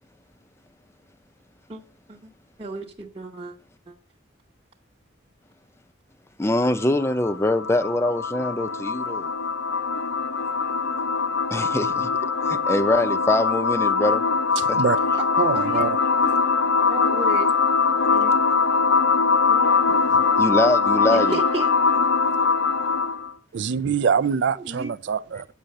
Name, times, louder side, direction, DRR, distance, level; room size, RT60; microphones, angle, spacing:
voice 1, 2.6-3.6 3.9-4.0 15.1-15.3 15.5-15.9 16.2-16.3 16.9-17.5 18.1-18.3 19.5-20.0 21.1-21.7 24.6-24.9, right 2 dB, 30° right, 0.9 m, -33 dB
voice 2, 6.4-9.3 11.5-12.1 12.5-14.2 14.7-14.8 20.4-21.4, left 1 dB, 15° left, 0.5 m, -23 dB
sound 1, 6.6-23.3, left 5 dB, 80° left, 0.8 m, -22 dB
voice 3, 14.6-15.0 15.4-16.0 23.5-25.5, right 6 dB, 60° right, 0.4 m, -24 dB
8.4 x 6.4 x 7.7 m
head